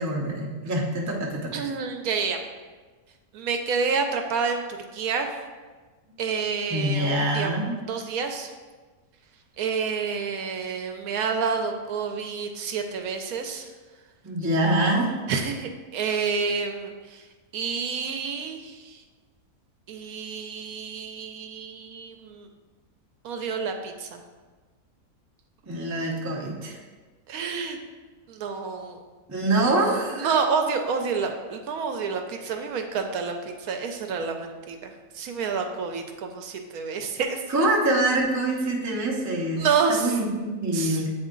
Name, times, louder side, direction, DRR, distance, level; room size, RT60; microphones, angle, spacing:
voice 1, 0.0-1.6 6.7-7.8 14.2-15.1 25.7-26.8 29.3-30.3 37.5-41.1, right 1 dB, 20° right, -2 dB, 0.4 m, -25 dB
voice 2, 1.5-2.4 3.3-4.6 4.9-5.3 6.2-7.6 7.9-8.5 9.6-13.7 15.3-17.2 17.5-19.0 19.9-22.5 23.2-24.2 27.3-27.8 28.3-29.0 30.1-37.7 39.6-40.2 40.7-41.0, right 5 dB, 75° right, 5 dB, 1.0 m, -29 dB
8.2 x 3.1 x 3.7 m, 1.4 s
omnidirectional pair, 1.6 m